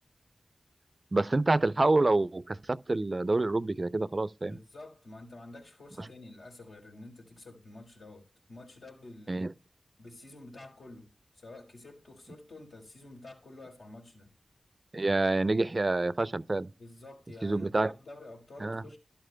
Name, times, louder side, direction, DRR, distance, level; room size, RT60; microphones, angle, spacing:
voice 1, 1.1-4.6 9.3-9.5 14.9-16.7 17.4-17.9 18.6-18.8, right 2 dB, 45° right, 0.5 m, -27 dB
voice 2, 4.4-9.5 10.0-14.3 16.8-19.0, left 2 dB, 80° left, 4.1 m, -49 dB
13.0 x 11.5 x 2.2 m
cardioid pair, 40°, 0 cm